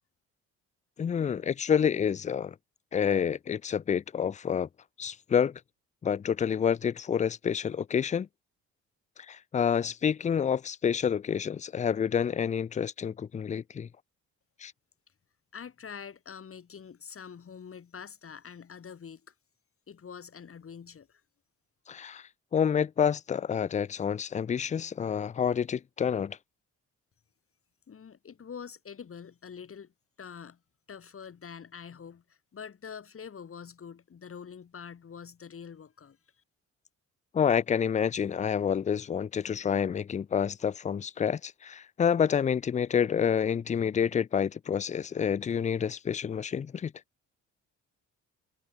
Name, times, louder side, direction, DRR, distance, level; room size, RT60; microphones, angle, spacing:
voice 1, 1.0-2.5 2.9-4.7 5.0-5.6 6.0-8.3 9.3-13.9 14.6-14.7 21.9-22.2 22.5-26.4 37.3-46.9, left 7 dB, 25° left, 0.4 m, -28 dB
voice 2, 15.5-19.2 19.9-21.2 27.9-29.9 30.2-30.6 30.9-36.2, left 7 dB, 45° left, 6.8 m, -45 dB
cardioid pair, 90°, 30 cm